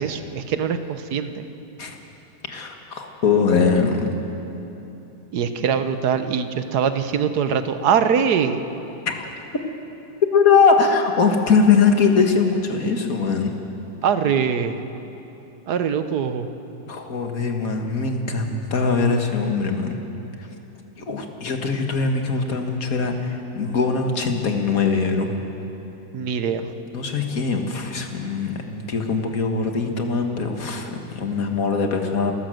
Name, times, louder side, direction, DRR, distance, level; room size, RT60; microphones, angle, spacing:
voice 1, 0.0-1.5 5.3-8.6 14.0-14.8 15.7-16.5 26.1-26.7, right 7 dB, 60° right, 9 dB, 1.4 m, -22 dB
voice 2, 2.5-4.1 9.1-9.3 10.3-13.5 16.9-20.0 20.4-20.5 21.0-25.3 26.8-32.3, left 5 dB, 50° left, 4 dB, 2.0 m, -21 dB
28.5 x 13.0 x 7.8 m, 3.0 s
omnidirectional pair, 2.1 m